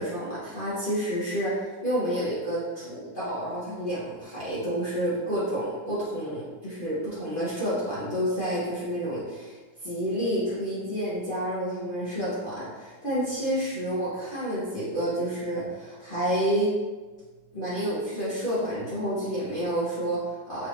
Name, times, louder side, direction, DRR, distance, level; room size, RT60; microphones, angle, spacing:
voice 1, 0.0-16.7 17.5-20.7, equal, 40° left, -11 dB, 0.8 m, -29 dB
4.8 x 3.3 x 2.6 m, 1.3 s
omnidirectional pair, 2.3 m